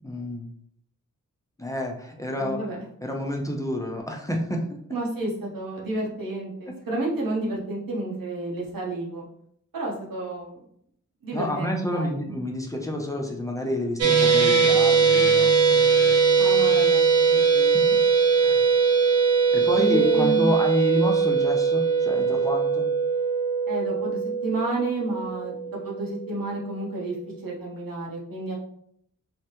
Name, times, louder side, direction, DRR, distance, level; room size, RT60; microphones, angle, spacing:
voice 1, 0.0-0.5 1.6-2.7 3.0-4.8 11.3-16.1 17.4-17.9 18.4-18.7 19.5-22.9, left 1 dB, 10° left, 0 dB, 0.5 m, -29 dB
voice 2, 2.4-2.8 4.9-9.2 9.7-10.6 11.2-12.3 16.4-17.9 19.7-20.5 23.7-27.2 27.4-28.5, right 2 dB, 85° right, -3 dB, 0.9 m, -30 dB
sound 1, 14.0-26.3, right 5 dB, 45° right, 0.6 m, -21 dB
3.2 x 2.2 x 2.9 m, 0.69 s
cardioid pair, 50°, 33 cm